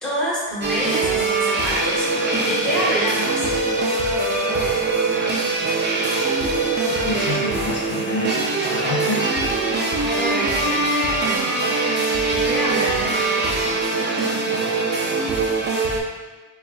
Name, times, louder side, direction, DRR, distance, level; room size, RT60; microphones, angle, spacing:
voice 1, 0.0-2.1 2.4-3.5 10.1-10.8 12.2-13.2, equal, ahead, -8 dB, 0.7 m, -26 dB
sound 1, 0.6-16.0, right 3 dB, 25° right, 0.3 m, -22 dB
voice 2, 6.9-9.3 12.8-13.0, left 4 dB, 70° left, -2 dB, 0.7 m, -29 dB
3.7 x 2.3 x 2.4 m, 1.2 s
wide cardioid pair, 145°, 46 cm